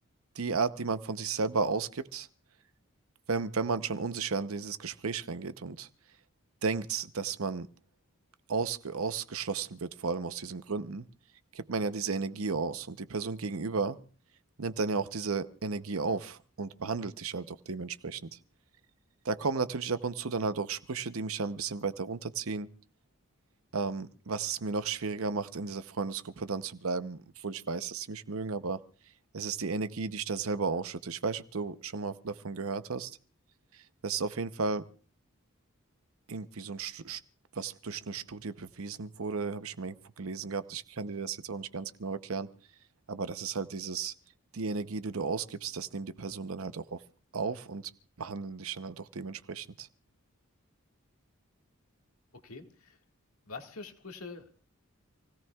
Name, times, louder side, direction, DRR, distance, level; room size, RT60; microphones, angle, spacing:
voice 1, 0.3-2.3 3.3-5.9 6.6-7.7 8.5-11.1 11.5-14.0 14.6-18.4 19.2-22.7 23.7-28.8 29.3-33.2 33.7-34.8 36.3-37.2 37.5-42.5 43.1-44.1 44.5-47.0 47.3-47.9 48.2-49.9, right 4 dB, 75° right, 12 dB, 0.8 m, -34 dB
voice 2, 52.3-53.0 53.5-54.6, left 4 dB, 80° left, 4 dB, 1.9 m, -45 dB
28.5 x 17.0 x 2.4 m, 0.40 s
head